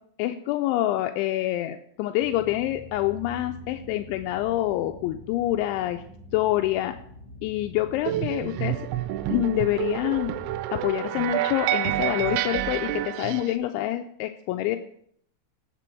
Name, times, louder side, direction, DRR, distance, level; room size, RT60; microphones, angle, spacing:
voice 1, 0.2-6.0 6.3-7.0 7.4-8.8 9.3-10.4 10.7-14.8, left 14 dB, 85° left, 6 dB, 2.9 m, -26 dB
sound 1, 2.2-10.6, equal, 35° right, 4.8 m, -45 dB
sound 2, 8.1-13.6, right 13 dB, 85° right, 3.0 m, -28 dB
18.5 x 6.9 x 4.5 m, 0.67 s
omnidirectional pair, 5.4 m